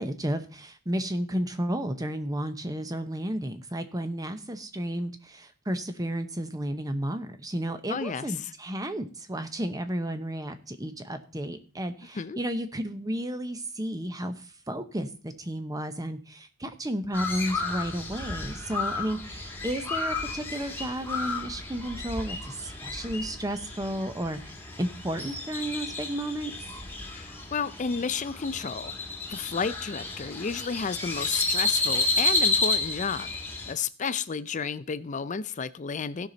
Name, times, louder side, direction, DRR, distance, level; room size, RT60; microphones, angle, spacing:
voice 1, 0.0-26.5, right 1 dB, 15° right, 9 dB, 0.9 m, -32 dB
voice 2, 7.9-8.5 12.1-12.4 27.1-28.9 29.3-33.3 33.7-36.3, left 5 dB, 35° left, 15 dB, 0.5 m, -32 dB
Crow, 17.1-33.7, left 3 dB, 10° left, 1.6 m, -31 dB
16.0 x 5.8 x 4.0 m, 0.36 s
head